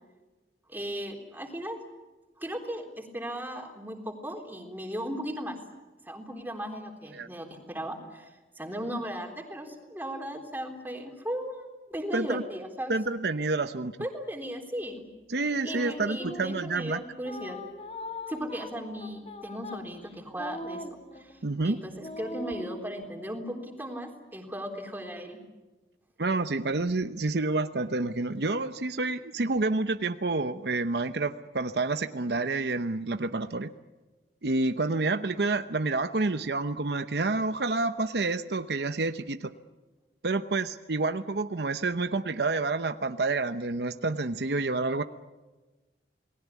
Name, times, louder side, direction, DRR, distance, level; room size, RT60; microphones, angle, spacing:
voice 1, 0.7-1.8 2.4-5.6 6.1-12.9 14.0-15.0 15.6-17.6 18.3-20.8 21.1-25.4, equal, 10° right, 3 dB, 3.7 m, -37 dB
voice 2, 12.1-12.4 12.9-13.9 15.3-17.0 21.4-21.8 26.2-33.7 34.4-39.5 40.2-45.0, right 3 dB, 70° right, 10 dB, 0.9 m, -28 dB
sound 1, 15.6-16.7 17.2-21.5 22.0-22.8, left 1 dB, 35° left, 1.8 m, -41 dB
28.5 x 20.0 x 8.4 m, 1.2 s
head